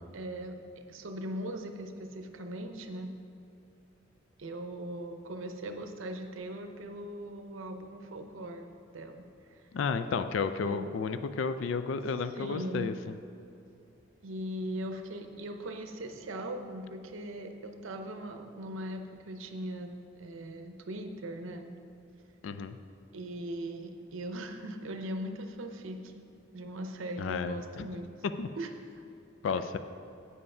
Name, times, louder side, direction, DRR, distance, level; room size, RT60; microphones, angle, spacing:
voice 1, 0.1-3.1 4.4-8.7 8.9-9.2 9.5-9.6 10.6-10.9 12.4-12.9 14.2-21.7 23.1-26.2 26.5-28.1 28.6-29.0, right 1 dB, 85° right, 6 dB, 0.7 m, -40 dB
voice 2, 9.7-12.9 22.4-22.8 27.2-27.9 28.4-28.5 29.4-29.8, left 5 dB, 75° left, 10 dB, 0.3 m, -32 dB
8.2 x 5.5 x 5.4 m, 2.6 s
head